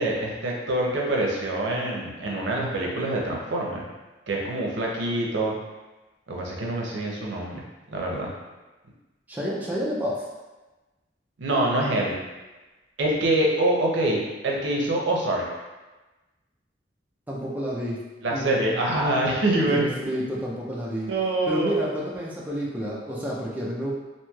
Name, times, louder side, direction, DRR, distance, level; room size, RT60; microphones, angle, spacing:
voice 1, 0.0-3.8 4.3-5.6 6.3-7.6 7.9-8.3 11.4-12.1 13.0-15.4 18.2-20.0 21.1-21.7, right 1 dB, 80° right, -2 dB, 0.6 m, -25 dB
voice 2, 9.3-10.3 17.3-18.0 18.3-18.8 19.6-21.1 21.5-23.9, equal, 10° right, -5 dB, 0.4 m, -30 dB
3.0 x 2.6 x 2.2 m, 1.1 s
head